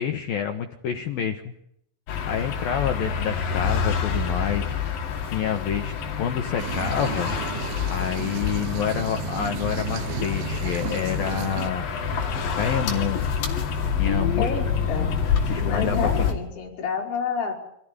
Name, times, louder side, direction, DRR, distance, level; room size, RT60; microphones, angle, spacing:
voice 1, 0.0-1.5 2.3-4.7 5.3-7.3 7.9-11.9 12.5-13.3 14.0-14.5 14.9-15.2 15.5-16.3, left 8 dB, 75° left, 5 dB, 2.1 m, -28 dB
sound 1, 2.1-16.3, left 6 dB, 50° left, 3.7 m, -27 dB
sound 2, 6.6-11.7, right 11 dB, 75° right, 3.3 m, -34 dB
voice 2, 14.4-15.1 15.5-17.5, left 5 dB, 30° left, -1 dB, 4.9 m, -29 dB
26.5 x 16.0 x 9.8 m, 0.77 s
omnidirectional pair, 6.0 m